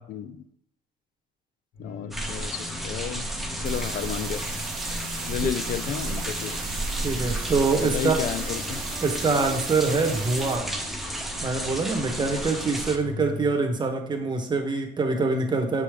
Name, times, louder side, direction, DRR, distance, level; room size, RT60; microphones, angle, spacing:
sound 1, 1.7-13.5, left 2 dB, 85° left, 2.2 m, -42 dB
voice 1, 1.8-3.3 3.6-4.5 5.3-7.1 7.8-8.8, left 9 dB, 55° left, 13 dB, 0.5 m, -33 dB
sound 2, 2.1-13.0, right 1 dB, ahead, 0.8 m, -32 dB
sound 3, 3.6-10.6, right 7 dB, 60° right, 0.9 m, -39 dB
voice 2, 7.0-8.2 9.0-10.7 11.4-15.8, right 3 dB, 25° right, 3 dB, 1.1 m, -25 dB
6.9 x 5.0 x 3.5 m, 0.76 s
cardioid pair, 110°, 17 cm